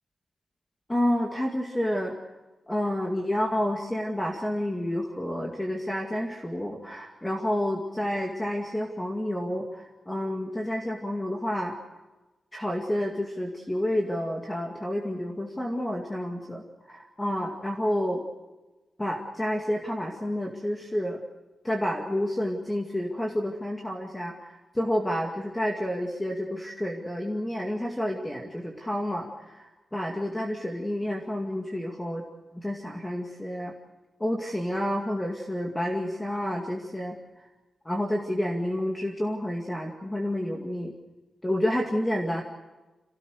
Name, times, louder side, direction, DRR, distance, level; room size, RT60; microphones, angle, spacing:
voice 1, 0.9-2.1 2.7-11.7 12.5-16.6 16.9-18.2 19.0-21.2 21.6-32.2 32.5-33.7 34.2-37.2 37.9-40.9 41.4-42.4, left 1 dB, 10° left, 1 dB, 2.2 m, -29 dB
27.5 x 18.0 x 6.6 m, 1.1 s
wide cardioid pair, 160°, 0 cm